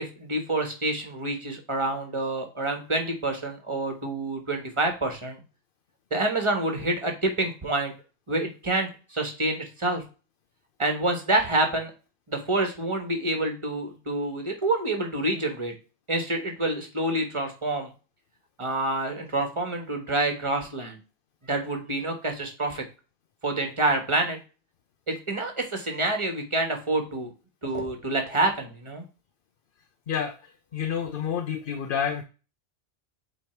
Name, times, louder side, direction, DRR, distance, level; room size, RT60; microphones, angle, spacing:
voice 1, 0.0-5.4 6.1-7.9 8.3-10.0 10.8-11.9 12.3-15.7 16.1-17.9 18.6-21.0 21.5-22.8 23.4-24.4 25.1-27.3 27.6-29.0, right 2 dB, 25° right, 4 dB, 1.5 m, -27 dB
voice 2, 30.7-32.2, left 7 dB, 55° left, 8 dB, 0.8 m, -28 dB
8.4 x 3.3 x 4.5 m, 0.33 s
omnidirectional pair, 1.2 m